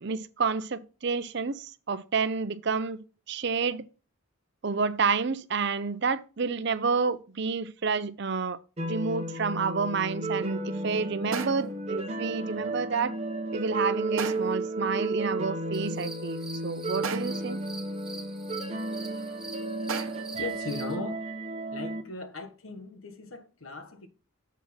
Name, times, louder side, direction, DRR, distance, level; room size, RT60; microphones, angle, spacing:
voice 1, 0.0-3.0 3.3-3.8 4.6-8.6 8.8-13.1 13.5-17.6, right 5 dB, 55° right, 0.6 m, -29 dB
sound 1, 8.8-22.0, right 2 dB, 30° right, 1.0 m, -33 dB
sound 2, 11.3-11.8 14.2-14.7 17.0-17.5 19.9-20.4, right 6 dB, 90° right, 0.9 m, -36 dB
sound 3, 15.7-20.9, right 3 dB, 5° right, 2.2 m, -45 dB
voice 2, 20.3-21.2 21.7-24.1, left 3 dB, 85° left, 1.3 m, -38 dB
7.2 x 5.6 x 4.3 m
head